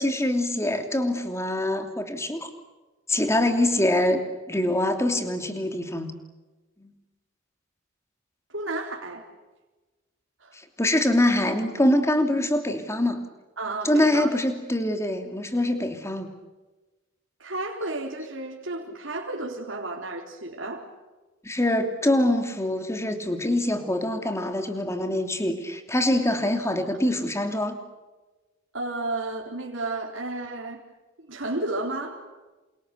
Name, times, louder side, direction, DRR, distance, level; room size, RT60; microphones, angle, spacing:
voice 1, 0.0-2.5 3.1-4.2 4.5-6.2 6.8-6.9 10.8-13.2 13.8-16.3 21.4-27.8, left 1 dB, 15° left, 6 dB, 3.0 m, -24 dB
voice 2, 8.5-9.3 10.4-10.6 13.6-14.3 17.4-20.9 28.7-30.8 31.2-32.2, right 2 dB, 70° right, -1 dB, 3.9 m, -32 dB
29.0 x 28.0 x 6.8 m, 1.2 s
head